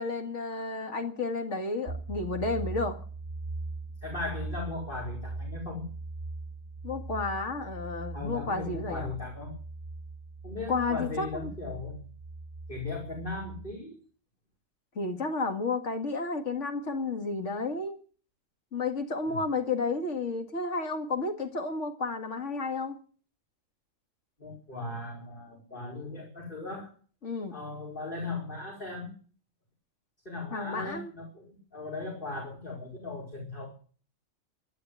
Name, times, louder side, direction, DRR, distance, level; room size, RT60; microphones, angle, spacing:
voice 1, 0.0-3.0 6.8-9.1 10.7-11.5 15.0-18.0 18.7-23.0 27.2-27.6 30.5-31.1, left 3 dB, 65° left, 5 dB, 2.3 m, -32 dB
sound 1, 1.8-13.7, right 3 dB, 25° right, 2.6 m, -40 dB
voice 2, 4.0-5.9 8.1-9.5 10.4-12.0 12.7-14.0 19.3-19.4 24.4-26.9 27.5-29.1 30.3-33.7, left 3 dB, 40° left, -3 dB, 5.2 m, -38 dB
12.5 x 12.0 x 8.2 m, 0.41 s
omnidirectional pair, 1.3 m